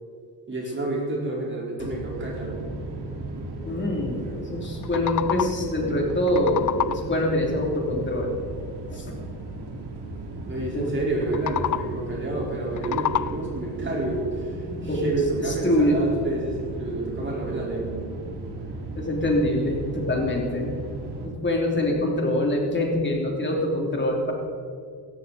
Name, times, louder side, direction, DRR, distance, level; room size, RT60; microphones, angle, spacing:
voice 1, 0.5-2.6 10.5-18.0, right 2 dB, 25° right, -3 dB, 4.5 m, -29 dB
sound 1, 1.8-21.3, right 2 dB, 65° right, 2.8 m, -36 dB
voice 2, 3.6-8.3 8.9-9.1 10.7-10.9 14.5-15.0 15.4-16.0 18.9-20.8 21.2-24.3, left 1 dB, 25° left, 0 dB, 3.1 m, -25 dB
sound 2, 4.6-5.8 6.1-7.2 11.2-12.1 12.6-13.7, left 11 dB, 45° left, 0.5 m, -29 dB
16.5 x 14.0 x 4.2 m, 2.3 s
cardioid pair, 120°, 44 cm